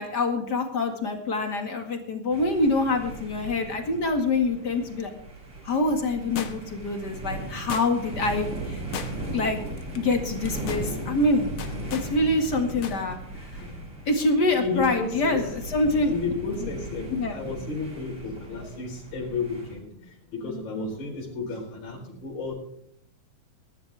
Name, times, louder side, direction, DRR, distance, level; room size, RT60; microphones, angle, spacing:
voice 1, 0.0-5.1 5.6-8.8 9.3-9.6 9.9-11.5 11.9-13.2 14.1-16.1 17.1-17.3, left 2 dB, 35° left, 5 dB, 2.0 m, -25 dB
sound 1, 2.3-19.8, right 2 dB, 40° right, 6.6 m, -37 dB
sound 2, 6.4-6.9 7.7-8.2 8.9-9.4 9.8-10.0 10.4-10.9 11.6-12.1 12.8-13.0 13.3-13.4, left 7 dB, 60° left, 1.4 m, -36 dB
voice 2, 14.5-15.5 16.1-22.5, left 4 dB, 85° left, -2 dB, 6.3 m, -32 dB
21.5 x 11.5 x 3.5 m, 0.70 s
omnidirectional pair, 4.0 m